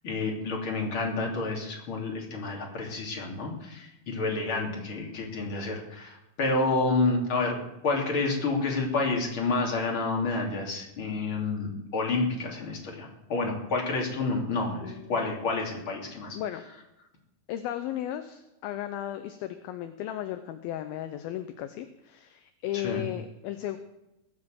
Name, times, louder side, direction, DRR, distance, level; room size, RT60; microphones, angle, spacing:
voice 1, 0.0-7.6 7.8-16.4 22.7-23.1, left 3 dB, 35° left, 0 dB, 3.4 m, -29 dB
voice 2, 14.8-15.2 16.3-16.6 17.5-23.8, left 12 dB, 75° left, 9 dB, 2.4 m, -35 dB
20.5 x 7.6 x 7.7 m, 0.94 s
omnidirectional pair, 4.7 m